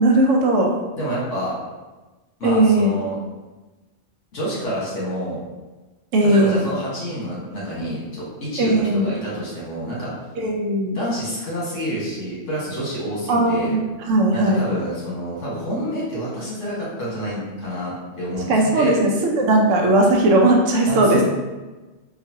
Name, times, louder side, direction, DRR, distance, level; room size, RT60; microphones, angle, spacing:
voice 1, 0.0-0.8 2.4-2.9 6.1-6.6 8.6-9.1 10.4-11.0 13.3-13.8 14.1-14.7 18.5-21.2, right 1 dB, 90° right, 0 dB, 1.0 m, -17 dB
voice 2, 0.9-1.6 2.4-3.2 4.3-5.4 6.2-10.1 10.9-13.8 14.3-18.9 20.9-21.2, equal, 80° left, -7 dB, 1.6 m, -28 dB
3.8 x 2.4 x 2.7 m, 1.2 s
omnidirectional pair, 1.3 m